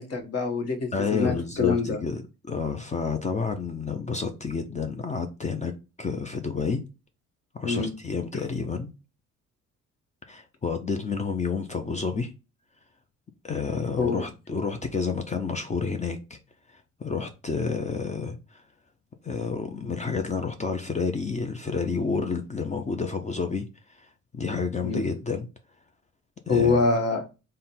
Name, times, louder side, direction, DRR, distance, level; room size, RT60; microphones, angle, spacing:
voice 1, 0.0-2.0 7.6-7.9 14.0-14.2 24.8-25.1 26.5-27.3, left 4 dB, 55° left, 1.1 m, -25 dB
voice 2, 0.9-5.7 6.0-6.8 7.5-8.9 10.3-12.3 13.4-16.4 16.7-18.6 19.2-23.7 24.0-25.5 26.5-26.8, left 5 dB, 25° left, 0.5 m, -30 dB
3.8 x 2.2 x 4.1 m
cardioid pair, 90°, 30 cm